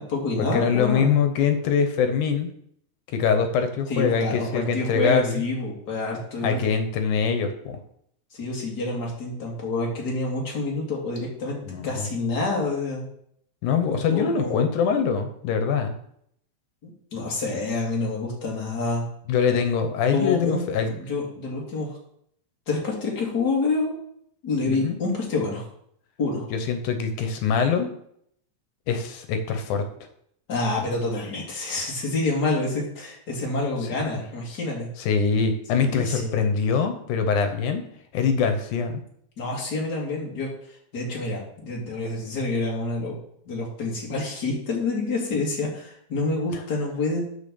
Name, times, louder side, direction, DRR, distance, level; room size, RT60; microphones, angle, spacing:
voice 1, 0.0-1.2 3.9-6.7 8.3-11.6 11.8-13.0 14.1-14.6 16.8-19.1 20.1-22.0 22.7-23.9 24.4-25.7 26.2-26.5 30.5-34.9 35.7-36.4 39.4-43.1 43.4-47.3, left 3 dB, 35° left, -2 dB, 2.6 m, -27 dB
voice 2, 0.5-2.5 3.1-5.4 6.4-7.8 11.7-12.1 13.6-16.0 19.3-20.9 24.7-25.0 26.5-27.9 28.9-29.8 34.1-34.2 35.0-37.8 38.1-39.0, left 6 dB, 90° left, 7 dB, 2.4 m, -23 dB
8.7 x 4.6 x 6.9 m, 0.70 s
omnidirectional pair, 3.5 m